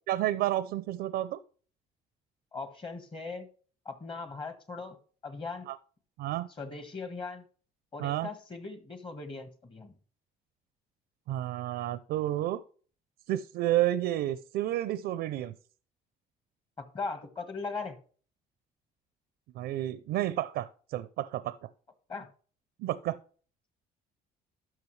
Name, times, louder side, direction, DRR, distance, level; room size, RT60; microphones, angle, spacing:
voice 1, 0.1-1.4 5.7-5.8 6.2-6.5 8.0-8.3 11.3-12.6 13.3-15.6 19.5-21.7 22.8-23.2, right 14 dB, 80° right, 15 dB, 0.5 m, -30 dB
voice 2, 2.5-3.5 3.8-5.0 5.2-5.7 6.6-7.5 7.9-9.9 16.9-18.0 22.1-22.3, left 4 dB, 30° left, 9 dB, 1.5 m, -39 dB
12.0 x 6.0 x 3.2 m, 0.41 s
cardioid pair, 110°, 17 cm